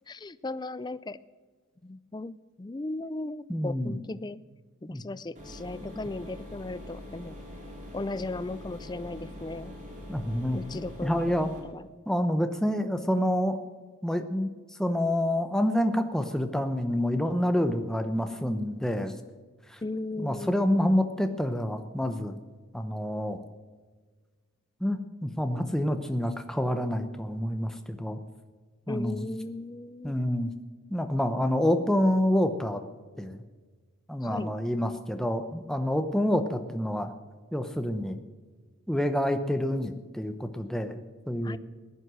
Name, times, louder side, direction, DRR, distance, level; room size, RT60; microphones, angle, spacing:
voice 1, 0.1-1.2 1.8-4.4 4.8-7.4 7.9-9.8 10.5-11.8 19.8-20.7 28.9-30.2 34.2-34.5 41.4-41.6, left 2 dB, 20° left, 17 dB, 0.4 m, -37 dB
voice 2, 3.5-3.9 4.9-5.0 10.1-10.6 11.0-11.5 12.1-13.6 14.0-14.5 14.8-19.1 19.7-19.8 20.2-22.4 22.7-23.4 24.8-28.2 28.9-29.3 30.0-30.5 30.9-32.8 33.2-33.4 34.1-37.1 37.5-38.2 38.9-41.6, left 1 dB, 5° left, 7 dB, 0.8 m, -27 dB
sound 1, 5.4-11.6, left 1 dB, 35° right, 3.8 m, -43 dB
16.0 x 11.0 x 6.3 m, 1.4 s
head